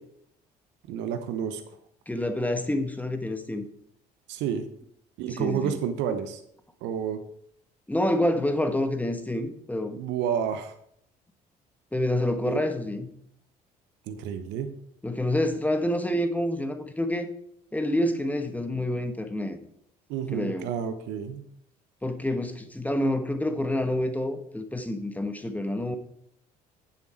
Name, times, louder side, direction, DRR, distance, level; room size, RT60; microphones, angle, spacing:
voice 1, 0.9-1.6 4.3-4.7 5.2-6.4 6.8-7.2 9.9-10.7 12.4-12.6 14.1-14.7 20.1-21.4, right 8 dB, 65° right, 9 dB, 0.9 m, -30 dB
voice 2, 2.1-3.7 5.3-5.8 7.9-10.0 11.9-13.1 15.0-17.3 17.7-19.6 20.3-20.7 22.0-26.0, left 1 dB, 10° left, 7 dB, 1.3 m, -27 dB
9.9 x 7.2 x 4.4 m, 0.71 s
hypercardioid pair, 55°, 20 cm